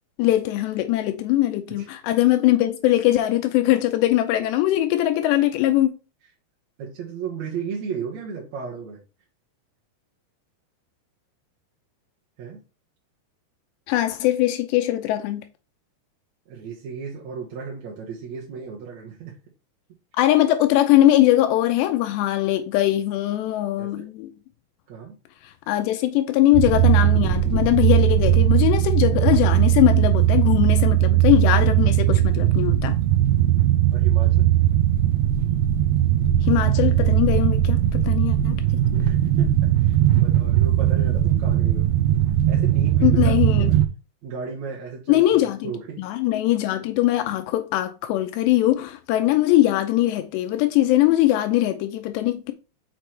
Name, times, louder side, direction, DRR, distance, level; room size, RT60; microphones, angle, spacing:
voice 1, 0.2-5.9 13.9-15.4 20.2-24.3 25.7-33.0 36.4-38.6 43.0-43.7 45.1-45.7 46.0-52.5, left 14 dB, 85° left, 2.9 m, -21 dB
voice 2, 6.8-9.0 12.4-12.6 16.5-19.4 23.8-24.1 24.9-25.2 33.9-34.5 38.9-41.9 42.5-43.8 44.2-45.2 45.6-46.1, right 6 dB, 55° right, 2.2 m, -35 dB
sound 1, 26.5-43.9, right 12 dB, 80° right, 2.3 m, -19 dB
6.7 x 6.0 x 3.3 m
omnidirectional pair, 4.9 m